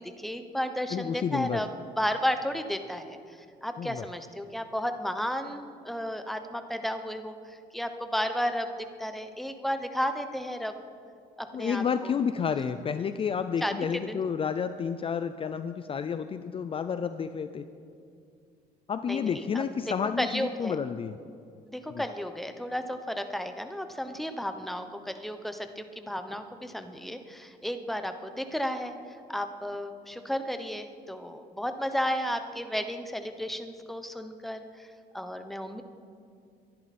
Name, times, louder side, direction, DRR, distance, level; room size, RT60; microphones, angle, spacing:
voice 1, 0.0-1.7 2.0-8.7 9.0-10.8 11.4-12.1 13.6-13.7 14.1-14.2 19.1-19.4 20.2-20.7 21.6-35.8, equal, ahead, 8 dB, 1.0 m, -33 dB
voice 2, 0.9-1.6 3.8-4.0 11.5-17.6 18.9-21.2 21.9-22.0, left 7 dB, 35° left, 11 dB, 0.5 m, -30 dB
22.5 x 10.5 x 4.3 m, 2.4 s
cardioid pair, 110°, 17 cm